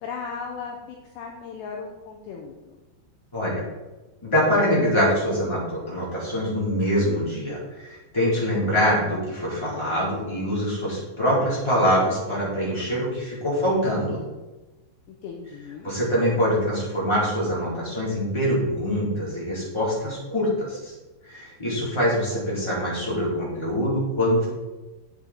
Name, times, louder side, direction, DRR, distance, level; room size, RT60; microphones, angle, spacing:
voice 1, 0.0-0.8 1.2-2.8 15.1-15.9, left 5 dB, 80° left, 1 dB, 2.6 m, -36 dB
voice 2, 4.2-14.2 15.8-20.9 21.2-24.5, equal, 5° left, -7 dB, 3.3 m, -24 dB
10.5 x 8.6 x 4.5 m, 1.1 s
omnidirectional pair, 5.9 m